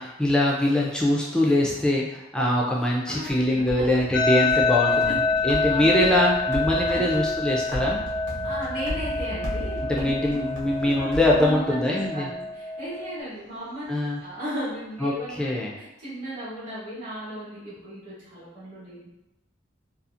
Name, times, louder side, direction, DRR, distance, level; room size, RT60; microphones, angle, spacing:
voice 1, 0.0-5.2 5.4-8.0 9.8-12.3 13.9-14.2 15.0-15.7, left 1 dB, 5° left, -3 dB, 0.4 m, -23 dB
voice 2, 3.1-3.8 4.9-6.3 6.9-7.1 8.4-10.4 10.8-11.1 11.4-13.9 14.2-19.1, right 1 dB, 40° right, -10 dB, 1.0 m, -36 dB
Metalic rumbling (fast), 3.3-12.1, equal, 70° right, 0.6 m, -36 dB
sound 1, 4.1-13.2, left 3 dB, 70° left, 0.4 m, -27 dB
2.7 x 2.4 x 2.5 m, 0.93 s
head